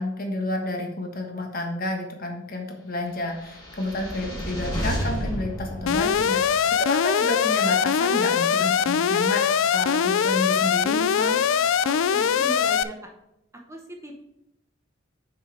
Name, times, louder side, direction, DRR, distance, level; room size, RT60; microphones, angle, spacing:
voice 1, 0.0-9.4 9.7-11.5, left 2 dB, 40° left, 2 dB, 1.3 m, -30 dB
sound 1, 3.3-6.7, equal, 20° left, 2.1 m, -31 dB
Alarm, 5.9-12.8, left 7 dB, 70° left, 0.3 m, -22 dB
voice 2, 11.8-13.0 13.7-14.2, right 1 dB, 15° right, 1 dB, 0.8 m, -37 dB
6.4 x 5.5 x 4.8 m, 0.85 s
head